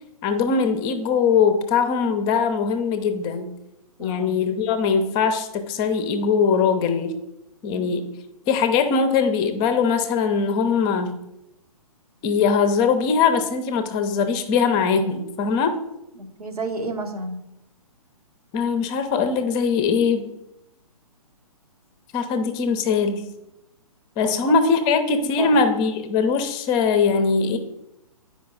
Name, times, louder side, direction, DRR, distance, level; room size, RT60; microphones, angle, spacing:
voice 1, 0.2-3.5 4.0-7.1 7.6-8.1 8.5-11.1 12.2-15.8 18.5-20.3 22.1-23.2 24.2-27.6, left 5 dB, 25° left, 8 dB, 0.7 m, -21 dB
voice 2, 4.0-4.3 7.7-7.8 16.1-17.4 24.2-24.3 25.4-25.6, right 2 dB, 85° right, 2 dB, 1.7 m, -31 dB
9.4 x 5.0 x 3.9 m, 0.88 s
figure-of-eight pair, 125°, 19 cm